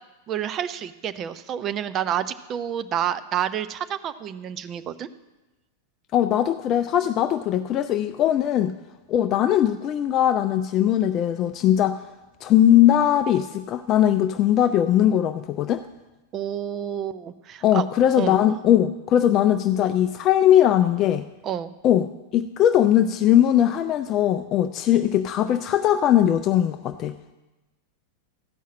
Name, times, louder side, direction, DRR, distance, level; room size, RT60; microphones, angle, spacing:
voice 1, 0.3-5.1 16.3-17.8 18.2-18.5 21.4-21.7, right 10 dB, 30° right, 12 dB, 0.5 m, -29 dB
voice 2, 6.1-8.7 9.1-12.0 12.4-15.8 17.6-21.2 21.8-22.1 22.3-27.3, left 11 dB, 35° left, 10 dB, 0.4 m, -20 dB
13.5 x 5.6 x 7.3 m, 1.1 s
figure-of-eight pair, 90°, 0 cm